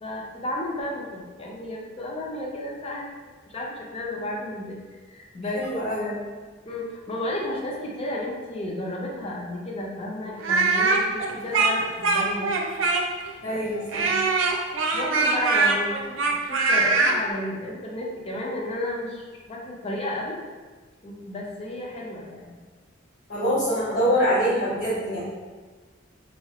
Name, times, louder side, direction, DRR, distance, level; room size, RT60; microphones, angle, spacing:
voice 1, 0.0-3.1 3.4-5.7 5.9-6.1 6.6-12.6 13.5-13.7 13.9-14.0 14.9-16.2 16.4-20.4 21.0-22.6, left 1 dB, 30° left, -2 dB, 0.5 m, -32 dB
voice 2, 5.5-6.1 13.4-14.1 23.3-25.2, equal, 80° left, -16 dB, 1.5 m, -24 dB
Speech, 10.4-13.3 13.9-17.2, right 3 dB, 75° right, 0.4 m, -22 dB
2.9 x 2.3 x 2.8 m, 1.4 s
head